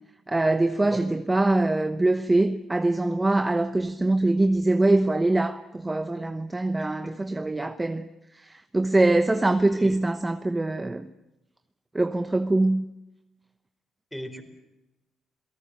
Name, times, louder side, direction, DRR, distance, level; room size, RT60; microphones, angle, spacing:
voice 1, 0.3-8.1 8.4-11.1 11.9-12.8, right 2 dB, 15° right, 1.0 m, -23 dB
voice 2, 6.8-7.4 9.3-10.0 14.1-14.4, equal, 5° left, 4.3 m, -40 dB
28.0 x 18.0 x 7.5 m
cardioid pair, 90°, 0 cm